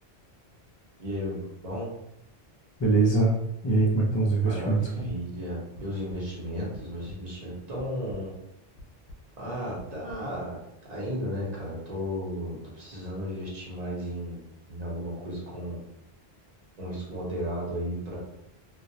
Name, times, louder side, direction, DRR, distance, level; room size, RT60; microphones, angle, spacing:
voice 1, 1.0-1.4 1.6-1.9 4.4-4.8 5.0-8.3 9.4-10.6 10.9-14.4 14.7-15.8 16.8-18.2, equal, 45° right, -5 dB, 0.7 m, -34 dB
voice 2, 2.8-3.4 3.6-5.1, right 3 dB, 40° left, -2 dB, 0.4 m, -23 dB
sound 1, 5.1-5.2 5.8-6.2 6.6-7.2 7.8-8.2 8.8-9.2 9.8-10.2, left 1 dB, 65° left, 0.7 m, -45 dB
2.3 x 2.0 x 2.6 m, 0.82 s
omnidirectional pair, 1.1 m